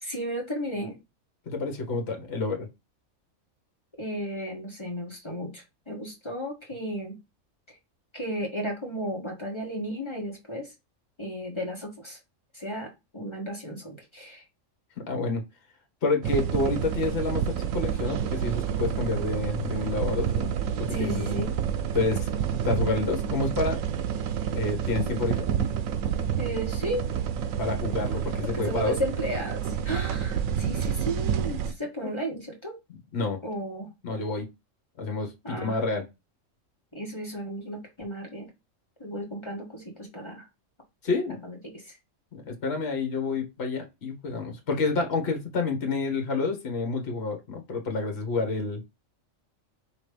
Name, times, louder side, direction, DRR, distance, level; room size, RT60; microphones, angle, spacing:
voice 1, 0.0-1.0 4.0-7.2 8.1-10.7 11.2-12.2 12.5-14.4 20.9-21.6 26.4-27.1 28.4-32.7 33.4-33.9 35.4-35.8 36.9-38.5 39.0-40.4 41.4-42.0, right 1 dB, 25° left, 0 dB, 1.2 m, -34 dB
voice 2, 1.5-2.7 15.1-15.4 16.0-20.7 21.0-21.3 21.9-22.3 22.6-23.8 24.5-25.5 27.6-28.9 32.0-32.1 33.1-33.4 34.0-34.5 35.0-36.0 41.0-41.4 42.3-48.8, left 3 dB, 55° left, 3 dB, 1.4 m, -29 dB
sound 1, 16.2-31.7, right 8 dB, 90° right, 1.0 m, -29 dB
5.1 x 3.0 x 3.3 m, 0.24 s
omnidirectional pair, 1.3 m